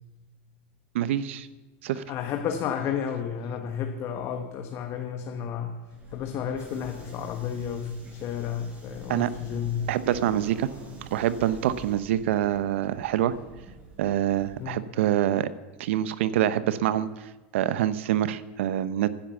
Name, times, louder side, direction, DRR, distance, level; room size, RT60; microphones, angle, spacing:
voice 1, 0.9-1.5 1.8-2.0 9.1-9.3 9.9-10.7 11.1-13.3 14.0-15.5 15.8-19.1, right 12 dB, 80° right, 16 dB, 0.8 m, -26 dB
voice 2, 1.9-5.8 6.1-9.9 14.6-14.9, left 8 dB, 45° left, 5 dB, 1.3 m, -32 dB
Subway metro underground, 5.9-14.6, right 2 dB, 20° right, 5.1 m, -46 dB
15.0 x 10.0 x 7.1 m, 1.2 s
supercardioid pair, 120°, 7 cm